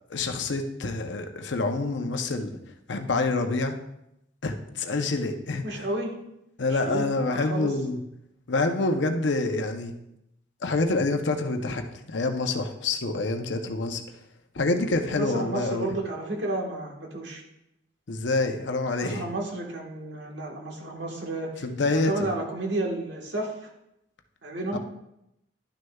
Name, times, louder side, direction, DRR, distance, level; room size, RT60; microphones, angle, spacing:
voice 1, 0.1-2.6 2.9-3.8 4.4-5.8 6.6-8.0 8.5-9.9 10.6-14.0 14.5-15.9 18.1-19.3 21.6-22.3 24.7-24.8, left 3 dB, 70° left, 6 dB, 0.7 m, -27 dB
voice 2, 5.6-6.1 6.7-7.7 15.2-17.4 19.0-23.7 24.4-24.8, right 2 dB, 65° right, 0 dB, 1.4 m, -32 dB
11.0 x 6.4 x 2.3 m, 0.84 s
head